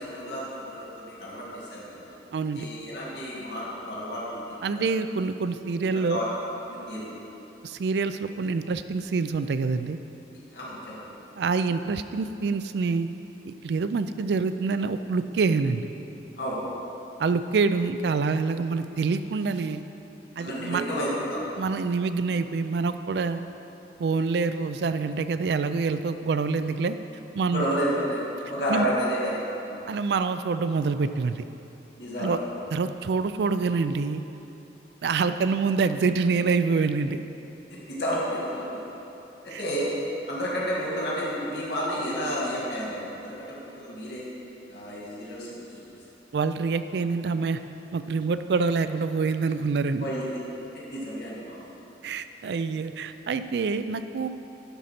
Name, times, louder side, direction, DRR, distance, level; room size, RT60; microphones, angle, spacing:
voice 1, 0.0-2.1 2.5-4.9 5.9-6.3 6.7-7.1 10.5-11.0 16.4-16.6 20.4-21.4 27.5-28.2 28.5-29.9 32.0-32.6 37.7-38.9 39.4-39.9 40.3-44.2 44.7-45.7 50.0-50.4 50.9-51.6, equal, 60° left, -6 dB, 2.0 m, -31 dB
voice 2, 2.3-2.7 4.6-6.2 7.6-10.0 11.4-13.1 13.5-15.9 17.2-19.8 20.4-20.8 21.6-23.4 24.0-27.0 27.3-27.7 28.7-28.9 29.9-31.4 32.2-32.4 32.7-34.2 35.0-37.2 39.5-39.6 46.3-47.6 47.9-50.1 52.0-54.3, right 4 dB, 65° right, 11 dB, 0.3 m, -26 dB
11.5 x 4.1 x 5.8 m, 3.0 s
head